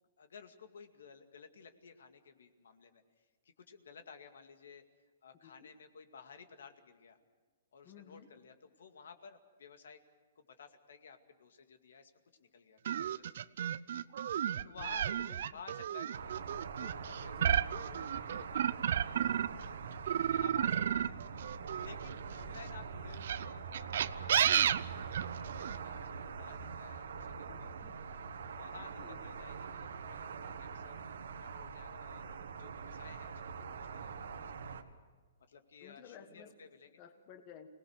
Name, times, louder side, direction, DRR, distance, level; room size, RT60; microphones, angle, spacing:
voice 1, 0.2-4.8 5.2-7.2 7.7-10.0 10.4-12.1 12.4-13.8 14.6-15.1 15.4-16.4 16.8-19.7 20.2-21.3 21.8-27.5 28.4-34.4 35.5-37.0, left 6 dB, 80° left, 7 dB, 2.2 m, -55 dB
voice 2, 7.8-8.3 14.7-15.4 17.2-17.6 27.5-27.9 28.9-29.2 35.8-36.5 37.0-37.7, left 8 dB, 30° left, 7 dB, 1.4 m, -55 dB
sound 1, 12.8-19.6 20.1-22.4 23.1-25.8, right 9 dB, 60° right, 0.6 m, -32 dB
sound 2, 16.1-34.8, right 6 dB, 80° right, 1.8 m, -44 dB
25.5 x 19.0 x 6.6 m, 1.4 s
hypercardioid pair, 160°, 0 cm